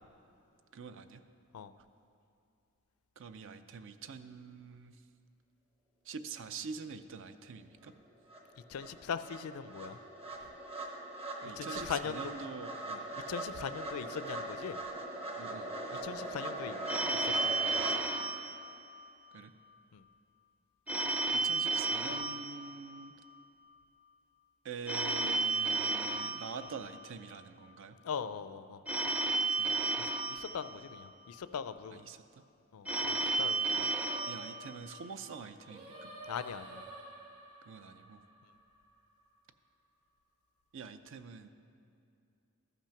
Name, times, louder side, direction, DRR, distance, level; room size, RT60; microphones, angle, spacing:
voice 1, 0.7-1.2 3.2-5.0 6.1-7.9 11.4-13.0 15.4-15.7 19.3-19.5 21.3-23.1 24.6-28.0 29.5-29.7 31.9-32.4 33.1-33.3 34.3-36.1 37.7-38.2 40.7-41.5, right 5 dB, 60° right, 11 dB, 0.5 m, -45 dB
sound 1, 7.9-8.0 8.3-18.0, right 2 dB, 25° right, 1.0 m, -41 dB
voice 2, 8.7-10.0 11.6-12.3 13.3-14.8 16.0-16.8 17.1-17.4 19.9-20.0 28.0-28.8 30.0-32.1 32.7-33.9 36.3-36.8, left 7 dB, 70° left, 13 dB, 0.4 m, -40 dB
Telephone, 16.9-19.4 20.9-23.4 24.9-27.4 28.9-31.3 32.9-35.3, right 3 dB, 5° right, 0.5 m, -34 dB
Singing, 33.9-39.2, right 1 dB, 80° right, 1.8 m, -51 dB
13.5 x 5.9 x 5.8 m, 2.6 s
head